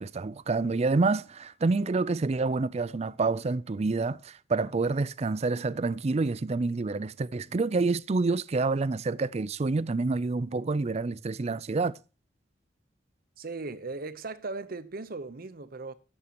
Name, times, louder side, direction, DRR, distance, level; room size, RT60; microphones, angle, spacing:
voice 1, 0.0-12.0, right 3 dB, 35° right, 0.4 m, -28 dB
voice 2, 13.4-15.9, right 3 dB, 55° right, 0.9 m, -38 dB
13.5 x 9.9 x 2.9 m
head